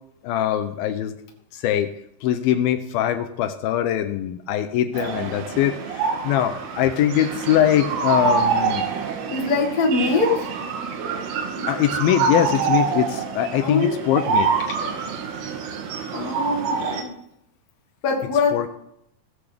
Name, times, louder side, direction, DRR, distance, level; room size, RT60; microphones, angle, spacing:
voice 1, 0.2-1.2 1.5-1.9 2.2-8.9 11.7-14.6 18.5-18.7, left 11 dB, 80° left, 8 dB, 2.3 m, -22 dB
sound 1, 4.9-17.0, right 5 dB, 85° right, 3.0 m, -26 dB
voice 2, 9.3-10.5 13.6-14.1 16.1-17.1 18.0-18.7, left 4 dB, 45° left, 0 dB, 1.3 m, -23 dB
17.0 x 7.4 x 3.4 m, 0.75 s
omnidirectional pair, 4.5 m